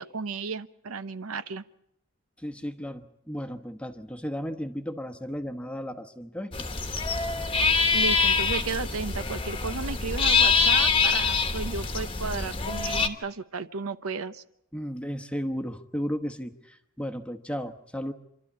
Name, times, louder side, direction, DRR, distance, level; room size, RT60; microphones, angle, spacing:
voice 1, 0.0-1.6 7.9-14.4, right 4 dB, 90° right, 12 dB, 0.9 m, -34 dB
voice 2, 2.4-6.7 14.7-18.1, equal, 5° left, 7 dB, 1.0 m, -34 dB
sound 1, 6.5-13.1, left 4 dB, 25° left, 1.2 m, -25 dB
27.0 x 12.5 x 8.6 m, 0.79 s
head